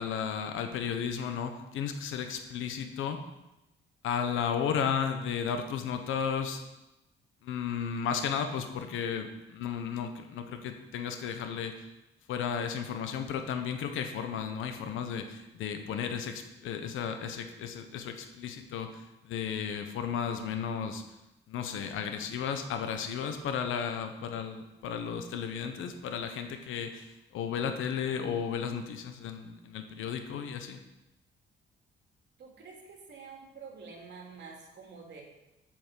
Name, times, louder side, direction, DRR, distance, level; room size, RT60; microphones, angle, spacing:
voice 1, 0.0-3.2 4.0-6.6 7.4-11.8 12.3-21.0 21.5-30.8, left 7 dB, 85° left, 6 dB, 1.3 m, -34 dB
voice 2, 32.4-35.2, right 5 dB, 60° right, -1 dB, 3.2 m, -48 dB
8.6 x 6.2 x 7.7 m, 0.95 s
cardioid pair, 90°, 20 cm